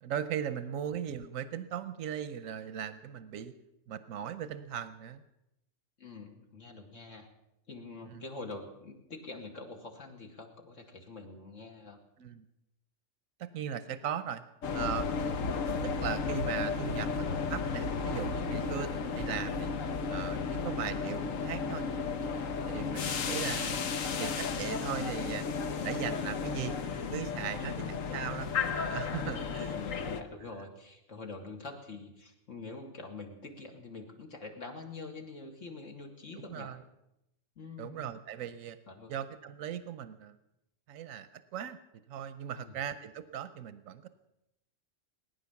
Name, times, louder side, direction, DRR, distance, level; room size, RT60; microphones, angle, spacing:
voice 1, 0.0-3.5 3.9-5.2 8.1-8.2 12.2-12.4 13.4-14.4 14.7-15.2 15.8-19.7 20.1-21.9 22.4-23.9 24.2-25.4 25.8-26.7 27.1-27.7 28.1-29.7 36.3-36.8 37.8-38.8 39.1-40.3 40.9-41.8 42.1-44.1, right 9 dB, 90° right, 13 dB, 1.2 m, -38 dB
voice 2, 6.0-7.3 7.7-12.0 22.6-23.3 27.6-28.3 29.2-36.7 37.6-38.1 38.9-39.1 42.5-42.8, left 3 dB, 70° left, 2 dB, 2.4 m, -45 dB
sound 1, 14.6-30.2, left 5 dB, 90° left, 1.3 m, -33 dB
19.5 x 10.0 x 7.0 m, 0.87 s
omnidirectional pair, 1.3 m